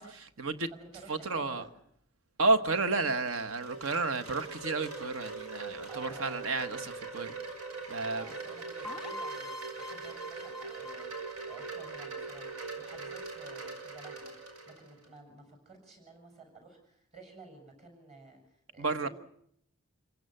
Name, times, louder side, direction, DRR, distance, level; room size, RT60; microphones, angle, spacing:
voice 1, 0.0-0.7 1.1-1.7 2.4-7.3 7.9-8.2 18.8-19.1, right 3 dB, 65° right, 1.3 m, -31 dB
voice 2, 0.7-1.7 5.9-6.5 7.9-11.1 11.5-12.5 12.8-19.1, right 3 dB, 30° right, 6.8 m, -53 dB
Wind chime, 2.8-15.1, right 4 dB, 85° right, 6.1 m, -42 dB
sound 1, 8.8-12.6, left 1 dB, ahead, 1.3 m, -44 dB
27.0 x 16.5 x 7.8 m
head